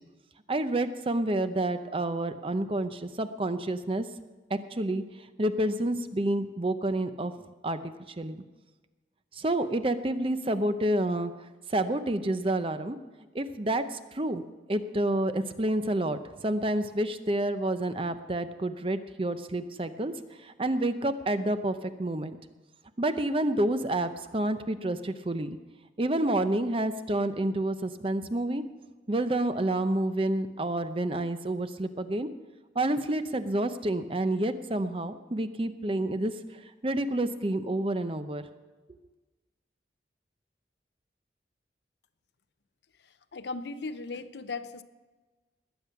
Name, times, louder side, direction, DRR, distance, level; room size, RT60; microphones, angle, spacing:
voice 1, 0.5-4.0 4.5-5.0 5.4-7.3 7.6-8.4 9.3-11.3 11.7-13.0 13.3-14.4 14.7-20.1 20.4-22.4 23.0-25.6 26.0-28.6 29.1-32.3 32.7-38.4, right 1 dB, 30° right, 10 dB, 0.7 m, -29 dB
voice 2, 43.0-44.8, left 3 dB, 75° left, 12 dB, 0.7 m, -37 dB
20.5 x 8.4 x 5.8 m, 1.2 s
head